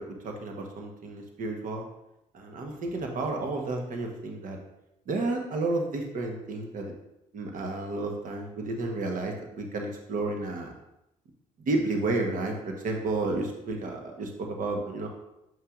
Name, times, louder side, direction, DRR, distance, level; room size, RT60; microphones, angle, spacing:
voice 1, 0.0-1.8 2.3-4.6 5.1-6.9 7.3-10.7 11.7-15.1, right 2 dB, 60° right, 2 dB, 1.1 m, -31 dB
7.4 x 5.5 x 2.5 m, 0.86 s
supercardioid pair, 70°, 16 cm